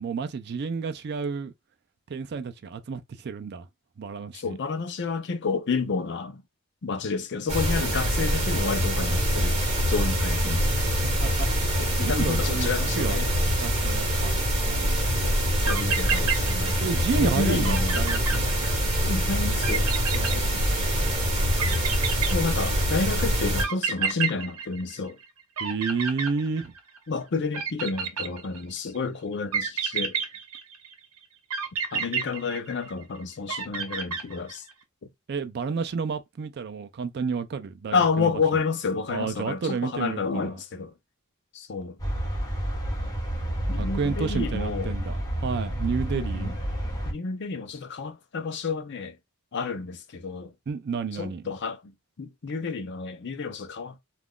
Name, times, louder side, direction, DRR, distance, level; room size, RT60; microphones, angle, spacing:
voice 1, 0.0-1.5 2.1-3.7 4.0-4.5 11.2-12.7 13.0-13.2 13.6-14.3 14.7-15.1 16.8-18.5 22.6-22.7 25.6-26.7 35.3-38.3 39.1-40.6 43.7-46.5 50.7-51.4, right 5 dB, 50° right, 0.4 m, -31 dB
voice 2, 4.3-6.4 6.8-9.6 9.9-10.7 11.8-13.3 15.2-16.8 17.1-18.0 19.1-20.6 22.3-25.2 27.1-30.2 31.9-34.6 37.9-40.9 41.5-42.0 43.7-44.9 46.1-46.5 47.0-49.1 49.5-50.5 51.2-51.9 52.2-54.0, left 4 dB, 55° left, 0.5 m, -30 dB
sound 1, 7.5-23.6, equal, 30° right, 1.3 m, -25 dB
sound 2, 15.7-17.0 17.3-17.4 17.6-19.1 19.6-21.0 21.6-22.9 23.6-25.3 25.6-27.0 27.5-28.8 29.5-30.9 31.5-33.0 33.5-34.7, right 6 dB, 85° right, 0.8 m, -30 dB
sound 3, 42.0-47.1, equal, 15° left, 1.0 m, -30 dB
2.4 x 2.3 x 3.5 m
head